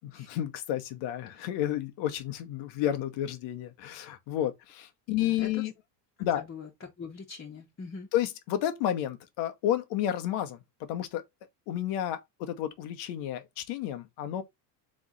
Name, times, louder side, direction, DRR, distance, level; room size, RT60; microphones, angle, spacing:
voice 1, 0.1-5.7 6.2-6.4 8.1-10.6 10.9-11.2 11.7-14.4, left 11 dB, 65° left, 1.2 m, -31 dB
voice 2, 5.1-5.7 6.3-6.7 7.0-8.1, left 4 dB, 25° left, 1.3 m, -43 dB
3.5 x 3.2 x 3.9 m
supercardioid pair, 90°, 50 cm